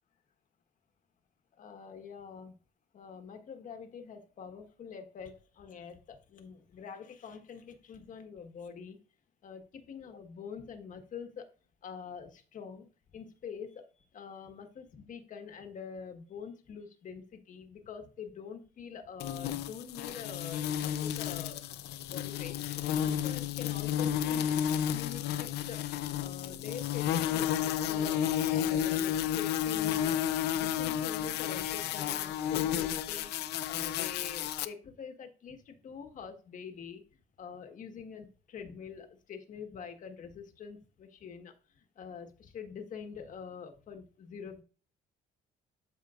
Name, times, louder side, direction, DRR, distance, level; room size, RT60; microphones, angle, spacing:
voice 1, 1.6-2.5 2.9-9.0 9.4-11.5 11.8-13.9 14.1-21.6 22.1-22.6 23.0-24.5 24.9-25.8 26.2-28.2 28.5-30.2 30.5-33.3 33.7-37.0 37.4-41.5 42.0-44.6, left 6 dB, 50° left, 6 dB, 1.5 m, -45 dB
sound 1, 19.2-34.7, left 10 dB, 80° left, 0.6 m, -32 dB
13.0 x 5.0 x 2.5 m, 0.37 s
cardioid pair, 110°, 17 cm